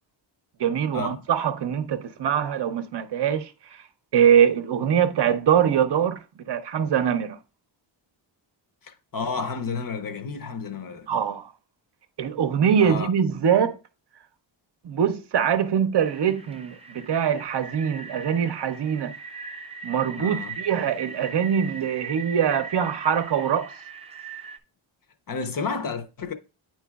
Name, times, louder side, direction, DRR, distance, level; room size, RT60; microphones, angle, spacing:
voice 1, 0.6-3.8 4.1-7.4 11.1-11.5 12.2-13.8 14.8-19.1 19.8-23.7, right 8 dB, 55° right, 0.6 m, -23 dB
voice 2, 8.8-11.1 12.8-13.1 20.2-20.5 25.3-26.3, left 5 dB, 45° left, 0.6 m, -31 dB
sound 1, 16.0-24.6, right 5 dB, 15° right, 0.5 m, -39 dB
9.2 x 4.5 x 2.3 m
wide cardioid pair, 160°, 48 cm